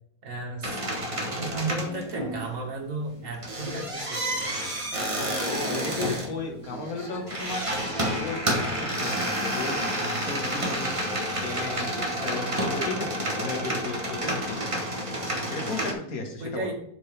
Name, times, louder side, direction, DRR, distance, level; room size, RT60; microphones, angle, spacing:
voice 1, 0.2-0.8 1.3-4.6 16.4-16.7, right 2 dB, 55° right, 1 dB, 1.9 m, -34 dB
sound 1, 0.6-2.7 3.1-15.9, right 1 dB, 25° right, 1.0 m, -30 dB
voice 2, 5.2-7.7 8.2-9.8 10.3-10.9 11.4-14.6 15.5-16.7, left 3 dB, 65° left, 3 dB, 1.8 m, -34 dB
11.0 x 4.6 x 3.3 m, 0.71 s
omnidirectional pair, 1.7 m